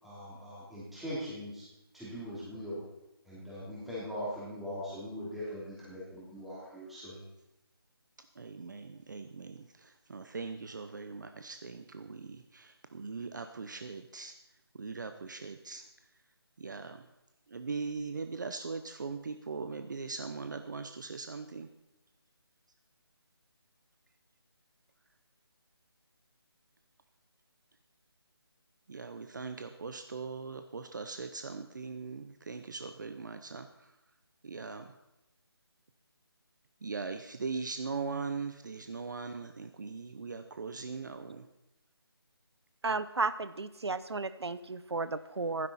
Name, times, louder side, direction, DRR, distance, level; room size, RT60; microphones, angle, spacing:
voice 1, 0.0-1.6 1.9-2.8 3.3-7.2, equal, ahead, -9 dB, 3.2 m, -41 dB
voice 2, 8.3-14.3 14.7-16.1 16.6-17.1 17.5-21.7 28.9-34.0 34.4-34.9 36.8-41.5, right 4 dB, 50° right, 8 dB, 0.8 m, -40 dB
voice 3, 42.8-45.7, right 3 dB, 90° right, 14 dB, 0.8 m, -33 dB
15.5 x 12.0 x 4.2 m, 0.94 s
figure-of-eight pair, 170°, 13 cm